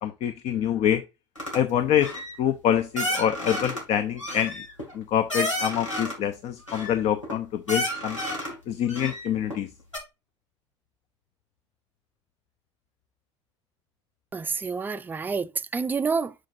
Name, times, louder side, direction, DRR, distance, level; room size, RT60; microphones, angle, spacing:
voice 1, 0.0-1.0 1.5-2.1 2.4-4.7 4.9-8.2 8.7-9.7, left 10 dB, 45° left, 0.7 m, -25 dB
sound 1, 1.4-1.6 2.0-2.4 3.0-3.8 4.2-6.2 6.7-7.3 7.7-8.5 8.9-9.6 9.9-10.0, equal, 90° left, 2.3 m, -31 dB
voice 2, 14.3-16.3, right 5 dB, 10° right, 0.4 m, -28 dB
6.5 x 6.3 x 2.5 m
figure-of-eight pair, 70°, 16 cm